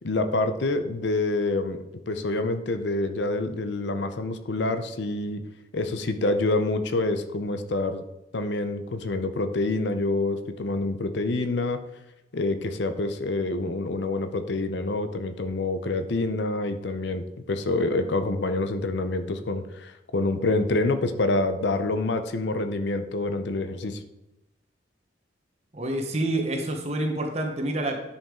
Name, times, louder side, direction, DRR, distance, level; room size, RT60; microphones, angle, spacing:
voice 1, 0.0-5.4 5.7-8.0 8.3-11.8 12.3-24.0, left 2 dB, 70° left, 8 dB, 0.6 m, -27 dB
voice 2, 25.7-28.0, right 1 dB, 35° right, 3 dB, 1.0 m, -27 dB
10.5 x 5.3 x 3.8 m, 0.94 s
head